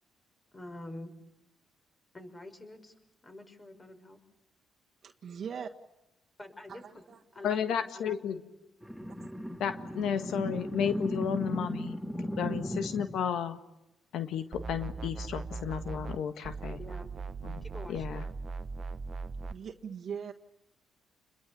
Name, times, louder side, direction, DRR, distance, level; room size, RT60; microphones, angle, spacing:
voice 1, 0.5-1.1 2.1-2.9 3.2-4.2 6.4-7.0 7.3-8.3 16.8-17.1 17.6-18.3, left 1 dB, 25° left, 7 dB, 5.7 m, -46 dB
voice 2, 5.0-5.7 6.7-7.2 9.2-9.3 19.5-20.3, right 7 dB, 55° right, 3 dB, 1.6 m, -41 dB
voice 3, 7.4-8.4 9.6-12.0 12.4-13.6 14.1-16.8 17.4-18.2, left 8 dB, 75° left, 9 dB, 1.6 m, -33 dB
sound 1, 8.8-13.2, equal, 5° left, 2.0 m, -36 dB
sound 2, 14.5-16.2 16.4-19.6, right 4 dB, 40° right, 0.9 m, -39 dB
29.5 x 22.0 x 8.6 m, 0.90 s
cardioid pair, 90°, 0 cm